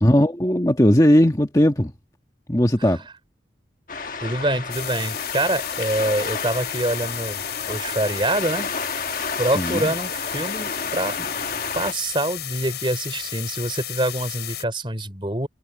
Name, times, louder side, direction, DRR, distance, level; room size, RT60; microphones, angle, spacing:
voice 1, 0.0-1.9 2.5-3.0 9.5-9.9, equal, 20° left, 1.4 m, -18 dB
sound 1, 3.9-11.9, left 4 dB, 50° left, 1.3 m, -31 dB
voice 2, 4.2-7.4 7.7-8.8 9.4-11.3 11.7-15.5, right 1 dB, 30° right, 4.3 m, -25 dB
sound 2, 4.7-14.6, left 13 dB, 75° left, 6.3 m, -33 dB
head